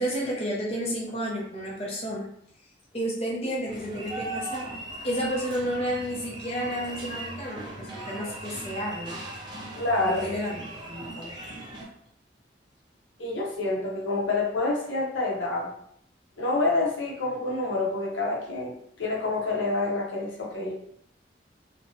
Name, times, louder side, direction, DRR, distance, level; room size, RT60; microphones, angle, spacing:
voice 1, 0.0-2.3 2.9-9.2 10.1-11.5, equal, 30° left, -4 dB, 0.6 m, -31 dB
sound 1, 3.7-11.8, right 2 dB, 25° right, 0.5 m, -39 dB
voice 2, 9.8-10.3 13.2-15.7 16.4-20.7, left 2 dB, 80° left, -2 dB, 0.7 m, -27 dB
2.7 x 2.1 x 2.7 m, 0.69 s
head